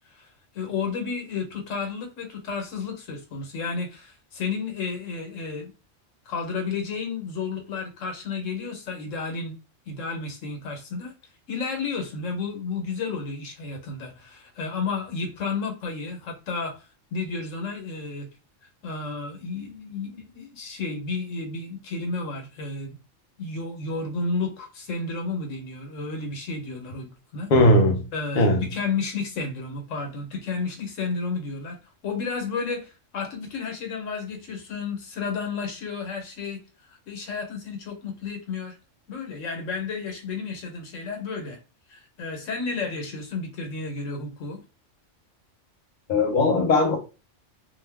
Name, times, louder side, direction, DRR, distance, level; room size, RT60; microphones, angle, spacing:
voice 1, 0.5-5.7 6.3-9.6 9.9-11.1 11.5-16.8 17.1-18.3 18.8-22.9 23.4-27.5 28.1-31.8 32.0-36.6 37.1-38.8 39.1-41.6 41.9-44.6, left 4 dB, 85° left, 1.2 m, -32 dB
voice 2, 27.5-28.0 28.4-28.6 46.1-47.0, left 1 dB, 45° left, 0.7 m, -18 dB
2.7 x 2.2 x 3.4 m
omnidirectional pair, 1.3 m